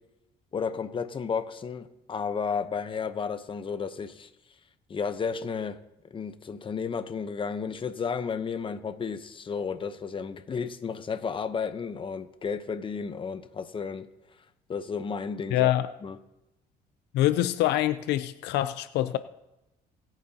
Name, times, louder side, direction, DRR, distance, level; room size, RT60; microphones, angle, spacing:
voice 1, 0.5-4.3 4.9-5.8 6.1-14.1 14.7-15.7 16.0-16.2, left 6 dB, 30° left, 0.9 m, -32 dB
voice 2, 15.5-15.9 17.1-19.2, left 14 dB, 85° left, 0.6 m, -25 dB
24.0 x 9.0 x 2.9 m
cardioid pair, 110°, 17 cm